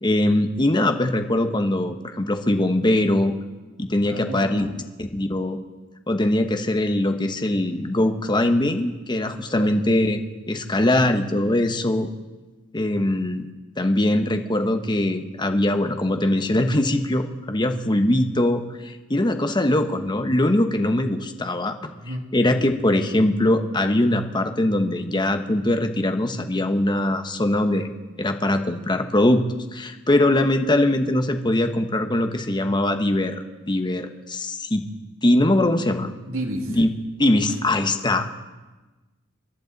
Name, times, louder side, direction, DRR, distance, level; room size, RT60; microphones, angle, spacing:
voice 1, 0.0-3.3 3.8-4.7 5.0-5.6 6.1-10.2 10.5-12.1 12.7-13.5 13.8-21.7 22.3-27.9 28.2-29.4 29.7-33.4 33.7-34.8 35.2-36.1 36.7-36.9 37.2-38.3, left 1 dB, 20° left, 6 dB, 1.0 m, -21 dB
voice 2, 4.0-4.8 9.5-9.7 22.0-22.3 36.2-36.8, right 1 dB, 75° right, 2 dB, 2.3 m, -31 dB
28.5 x 11.5 x 4.0 m, 1.2 s
head